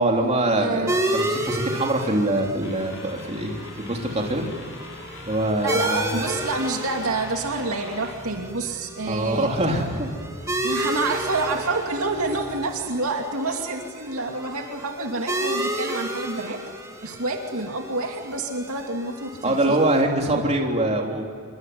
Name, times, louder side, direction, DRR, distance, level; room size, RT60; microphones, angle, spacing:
voice 1, 0.0-4.5 5.3-6.2 9.1-10.1 19.4-21.3, right 1 dB, 30° right, 1 dB, 3.4 m, -24 dB
voice 2, 0.6-1.0 5.6-9.5 10.6-16.6 17.0-19.9, right 2 dB, 65° right, 3 dB, 2.7 m, -28 dB
sound 1, 0.9-20.0, right 1 dB, 15° right, 2.5 m, -32 dB
sound 2, 2.6-8.1, left 3 dB, 60° left, 6.9 m, -43 dB
sound 3, 3.5-12.7, equal, 15° left, 3.2 m, -45 dB
26.5 x 23.5 x 9.5 m, 2.2 s
head